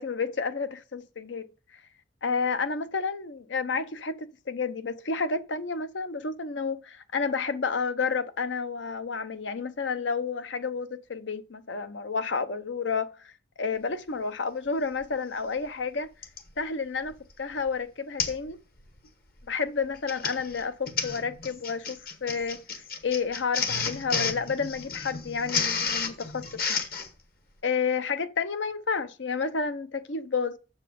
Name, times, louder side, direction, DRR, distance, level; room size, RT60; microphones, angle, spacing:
voice 1, 0.0-1.4 2.2-13.3 13.6-16.1 16.6-18.6 19.5-26.8 27.6-30.6, left 5 dB, 85° left, 0.8 m, -30 dB
Printer, 15.0-15.1 16.2-16.5 17.1-17.3 17.6-17.7 18.2-18.5 18.8-19.1 19.8-27.1, left 5 dB, 55° left, 1.2 m, -31 dB
7.3 x 6.7 x 5.2 m
head